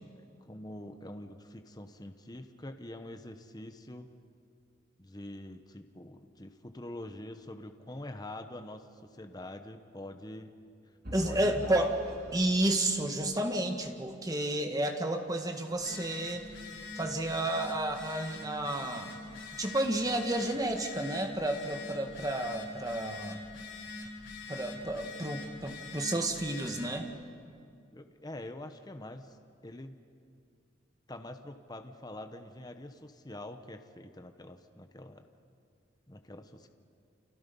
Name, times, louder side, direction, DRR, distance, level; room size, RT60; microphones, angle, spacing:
voice 1, 0.2-4.1 5.0-10.5 11.2-11.8 27.9-29.4 29.6-30.0 31.1-35.2 36.1-36.7, left 1 dB, 20° left, 7 dB, 1.0 m, -45 dB
Vehicle / Engine, 11.0-14.1, equal, 50° right, 3.2 m, -46 dB
voice 2, 11.1-12.0 12.3-16.4 16.9-19.1 19.6-23.4 24.5-27.1, right 1 dB, 20° right, 4 dB, 1.8 m, -31 dB
Telephone, 15.7-27.0, left 3 dB, 70° left, 5.1 m, -44 dB
29.5 x 27.5 x 5.5 m, 2.3 s
head